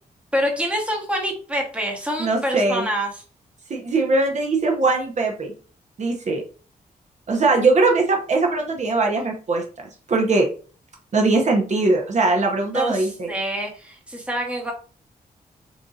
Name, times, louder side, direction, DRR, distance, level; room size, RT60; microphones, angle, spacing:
voice 1, 0.3-3.2 12.7-14.7, equal, 5° right, 1 dB, 1.0 m, -26 dB
voice 2, 2.2-2.9 3.7-5.5 6.0-6.4 7.3-10.5 11.1-13.3, right 3 dB, 50° right, 2 dB, 0.9 m, -21 dB
5.9 x 2.8 x 2.4 m, 0.38 s
wide cardioid pair, 140°, 16 cm